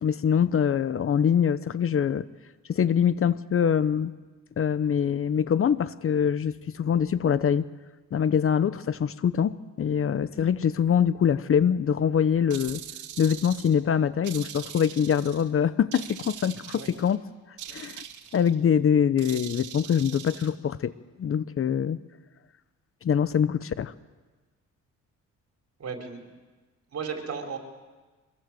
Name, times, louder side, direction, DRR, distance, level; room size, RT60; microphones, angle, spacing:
voice 1, 0.0-2.3 2.7-4.1 4.6-7.6 8.1-12.8 13.2-17.2 17.7-18.0 18.3-20.9 21.2-22.0 23.0-23.9, left 8 dB, 45° left, 15 dB, 0.9 m, -24 dB
sound 1, 12.5-13.8 14.2-15.5 15.9-17.2 17.6-18.6 19.2-20.5, right 10 dB, 80° right, 2.2 m, -41 dB
voice 2, 25.8-26.2 26.9-27.6, right 6 dB, 55° right, 3 dB, 4.9 m, -34 dB
24.5 x 21.5 x 7.8 m, 1.3 s
cardioid pair, 90°, 30 cm